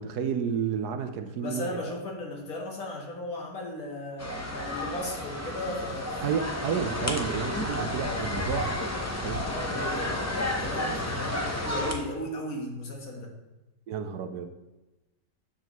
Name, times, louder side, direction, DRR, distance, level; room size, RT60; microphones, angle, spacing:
voice 1, 0.0-1.9 6.2-8.9 9.2-9.4 13.9-14.5, right 7 dB, 75° right, 8 dB, 1.2 m, -31 dB
voice 2, 1.4-6.2 7.5-7.7 9.4-13.4, left 1 dB, 60° left, 0 dB, 1.8 m, -36 dB
sound 1, 4.2-11.9, left 1 dB, 25° left, 0.3 m, -31 dB
10.0 x 7.1 x 3.0 m, 1.0 s
omnidirectional pair, 1.8 m